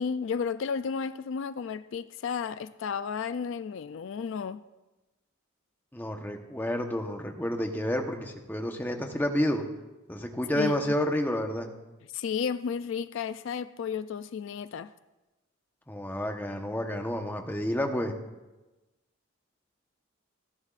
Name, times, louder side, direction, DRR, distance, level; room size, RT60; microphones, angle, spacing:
voice 1, 0.0-4.6 10.6-10.9 12.1-14.9, left 6 dB, 65° left, 0.3 m, -33 dB
voice 2, 5.9-9.6 10.1-11.7 15.9-18.2, left 1 dB, 10° left, 1.0 m, -30 dB
29.5 x 10.5 x 2.5 m
head